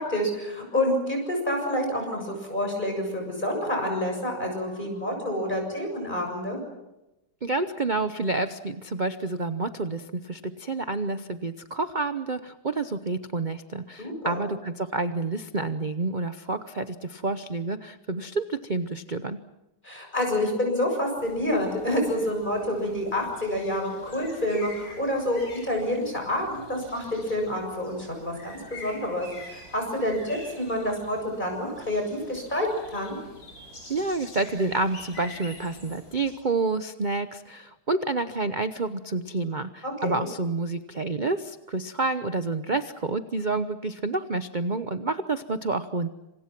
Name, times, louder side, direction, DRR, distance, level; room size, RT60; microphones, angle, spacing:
voice 1, 0.0-6.6 14.0-14.5 19.8-32.7 32.9-33.2 39.8-40.3, left 1 dB, 20° left, 2 dB, 7.3 m, -28 dB
voice 2, 7.4-19.4 33.9-46.1, right 3 dB, 60° right, 10 dB, 0.5 m, -29 dB
sound 1, 21.2-36.3, left 1 dB, 40° left, 8.4 m, -47 dB
27.0 x 26.5 x 6.1 m, 0.95 s
omnidirectional pair, 2.3 m